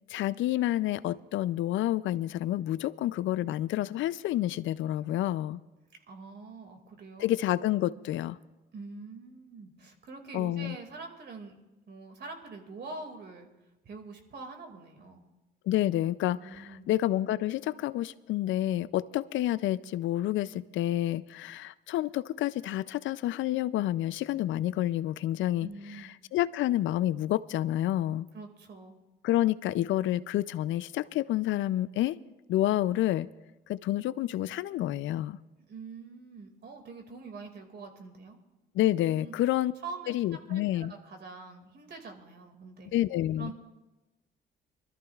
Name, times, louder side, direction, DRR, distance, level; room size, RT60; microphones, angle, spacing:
voice 1, 0.1-5.6 7.2-8.4 10.3-10.8 15.7-25.7 26.3-28.3 29.2-32.2 32.5-33.3 33.7-35.4 38.7-39.7 40.1-40.9 42.9-43.5, left 14 dB, 75° left, 17 dB, 0.4 m, -29 dB
voice 2, 6.1-7.3 8.7-13.5 13.8-15.3 16.4-16.9 25.6-26.1 28.3-29.0 35.6-38.4 39.1-39.3 39.8-42.9 43.4-43.5, right 4 dB, 55° right, 4 dB, 2.1 m, -45 dB
24.0 x 13.0 x 2.4 m, 1.0 s
cardioid pair, 90°, 20 cm